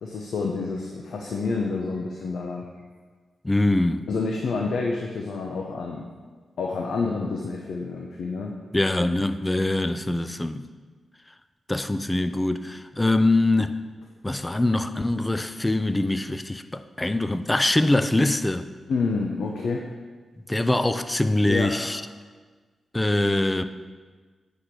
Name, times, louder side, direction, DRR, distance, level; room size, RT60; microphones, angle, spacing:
voice 1, 0.0-2.7 4.1-6.1 6.6-8.5 18.9-19.8 21.5-21.9, left 4 dB, 80° left, 0.8 m, -28 dB
voice 2, 3.4-4.1 8.7-10.7 11.7-13.8 14.2-18.7 20.5-22.0 22.9-23.6, left 2 dB, 15° left, 0.5 m, -23 dB
8.4 x 5.1 x 6.2 m
cardioid pair, 65°, 0 cm